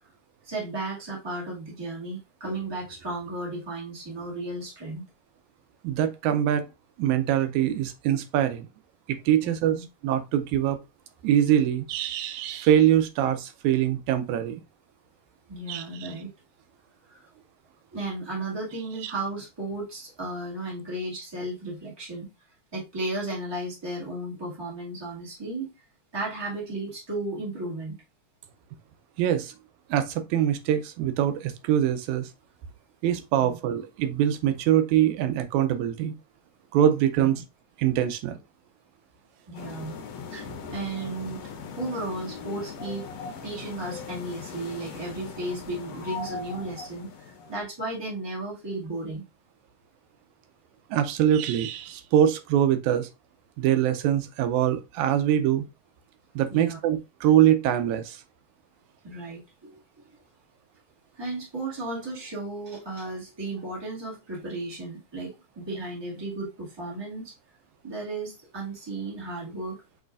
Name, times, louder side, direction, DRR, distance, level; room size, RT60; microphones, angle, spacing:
voice 1, 0.4-5.0 9.4-9.8 15.5-16.3 17.1-17.3 17.9-22.3 22.7-25.7 26.1-28.0 33.4-33.6 39.5-40.0 40.3-41.5 41.8-43.0 43.4-49.2 56.5-56.8 59.0-60.2 61.2-67.3 67.8-69.8, right 2 dB, 10° right, 1.4 m, -34 dB
voice 2, 5.8-6.6 7.0-8.7 9.1-9.8 10.0-10.8 11.2-14.6 15.7-16.1 19.0-19.1 29.2-29.5 29.9-32.3 33.0-36.1 36.7-37.4 37.8-38.4 50.9-53.1 53.6-55.6 56.4-58.2, right 11 dB, 90° right, 2.0 m, -23 dB
sound 1, 39.5-47.6, left 5 dB, 70° left, 1.8 m, -39 dB
6.3 x 3.1 x 2.4 m
omnidirectional pair, 3.3 m